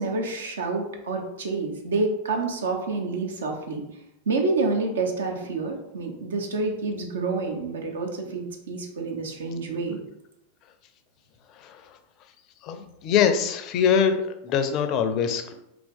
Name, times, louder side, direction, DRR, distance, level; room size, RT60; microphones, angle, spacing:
voice 1, 0.0-3.8 4.3-10.0, right 3 dB, 65° right, 3 dB, 0.8 m, -28 dB
voice 2, 12.6-15.5, left 7 dB, 40° left, 8 dB, 0.5 m, -23 dB
3.9 x 2.9 x 3.6 m, 0.84 s
figure-of-eight pair, 90°, 0 cm